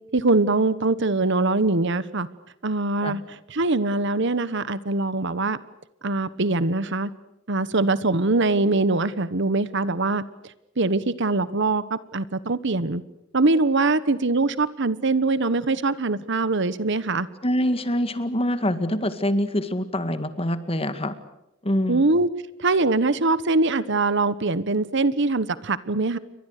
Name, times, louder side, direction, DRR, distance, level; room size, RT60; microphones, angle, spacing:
voice 1, 0.1-2.3 2.6-5.6 6.0-7.1 7.5-10.2 10.8-13.0 13.3-17.3 21.9-22.3 22.6-26.2, right 3 dB, 65° right, 16 dB, 1.2 m, -23 dB
voice 2, 17.4-21.1 21.6-22.0, equal, 30° left, 11 dB, 2.0 m, -25 dB
29.5 x 23.5 x 6.7 m, 0.89 s
head